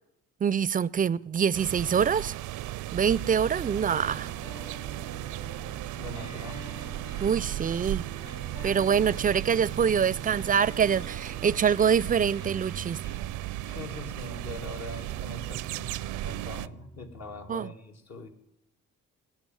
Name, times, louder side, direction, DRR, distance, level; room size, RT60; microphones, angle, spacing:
voice 1, 0.4-2.4 2.9-4.3 7.2-8.0 8.6-13.0 17.5-17.7, right 7 dB, 30° right, 0.4 m, -25 dB
sound 1, 1.5-16.7, right 15 dB, 80° right, 0.5 m, -36 dB
sound 2, 3.5-17.5, right 1 dB, 80° left, 4.7 m, -47 dB
voice 2, 6.0-6.6 13.7-16.0 16.2-18.3, left 2 dB, 60° left, 2.2 m, -42 dB
16.5 x 6.2 x 8.9 m
cardioid pair, 90°, 30 cm